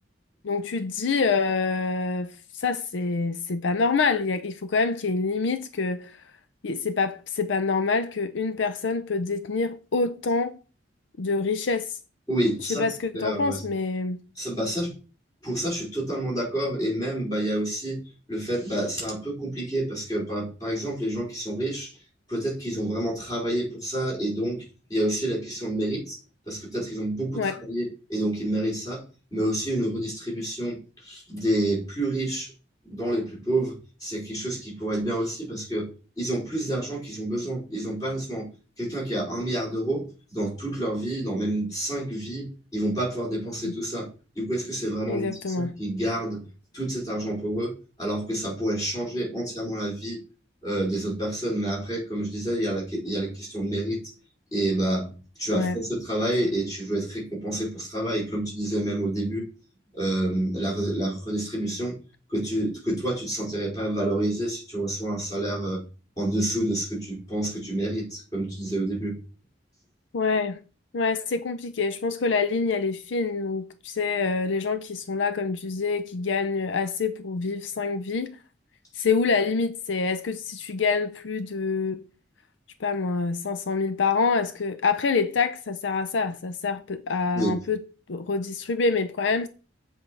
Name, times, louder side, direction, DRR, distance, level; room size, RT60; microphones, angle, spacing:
voice 1, 0.4-6.2 6.6-10.6 11.2-12.0 12.6-14.2 27.3-27.6 43.6-43.7 45.1-45.8 55.5-55.8 70.1-70.6 70.9-78.4 78.9-82.0 82.8-87.8 88.1-89.5, left 4 dB, 75° left, 0.5 m, -26 dB
voice 2, 12.3-12.9 13.1-13.6 14.4-14.9 15.4-18.0 18.3-21.9 22.3-24.6 24.9-26.2 26.5-29.0 29.3-32.5 32.8-35.9 36.2-38.5 38.8-44.1 44.3-46.5 46.7-50.2 50.6-54.0 54.5-59.5 59.9-62.0 62.3-65.8 66.2-69.2 87.3-87.6, right 1 dB, 20° left, 4.8 m, -28 dB
7.6 x 5.4 x 4.6 m
head